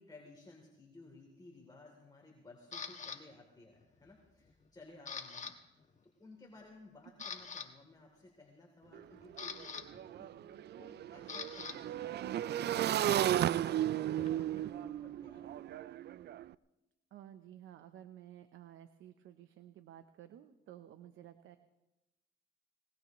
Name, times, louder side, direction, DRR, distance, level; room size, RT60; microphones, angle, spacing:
voice 1, 0.0-10.3 10.8-15.7, left 2 dB, 20° left, -1 dB, 3.2 m, -57 dB
Camera, 2.7-3.2 3.8-4.1 4.5-5.5 5.8-6.0 6.6-6.7 7.0-7.7 8.9-11.8 12.0-14.6, left 5 dB, 35° left, 1.5 m, -46 dB
Motorcycle / Engine, 8.9-9.0 9.3-16.4, right 12 dB, 55° right, 0.4 m, -34 dB
voice 2, 17.1-21.6, right 11 dB, 80° right, 9 dB, 0.8 m, -54 dB
21.0 x 20.5 x 3.1 m, 0.98 s
cardioid pair, 90°, 20 cm